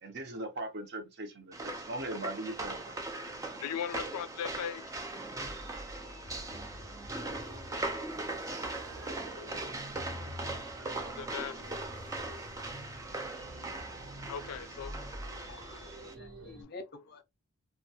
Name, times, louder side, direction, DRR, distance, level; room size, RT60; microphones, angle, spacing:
voice 1, 0.0-3.0, right 1 dB, 50° right, 0.7 m, -39 dB
sound 1, 1.5-16.1, right 2 dB, 15° right, 0.3 m, -40 dB
voice 2, 3.2-5.0 11.0-11.8 14.3-15.0, left 8 dB, 90° left, 0.3 m, -39 dB
sound 2, 5.3-16.6, equal, 70° right, 0.9 m, -47 dB
voice 3, 15.5-17.2, left 3 dB, 45° left, 0.6 m, -49 dB
2.7 x 2.2 x 2.7 m
head